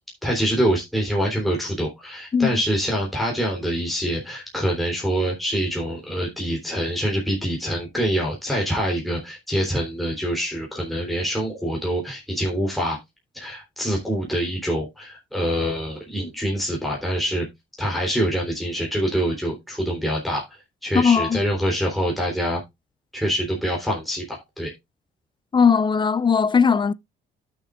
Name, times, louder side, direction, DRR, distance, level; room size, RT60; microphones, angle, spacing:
voice 1, 0.2-13.0 13.3-17.5 17.8-20.4 20.8-22.6 23.1-24.7, equal, ahead, 3.5 m, -25 dB
voice 2, 20.9-21.4 25.5-26.9, left 6 dB, 25° left, 0.4 m, -18 dB
12.5 x 6.5 x 2.5 m
cardioid pair, 90°, 20 cm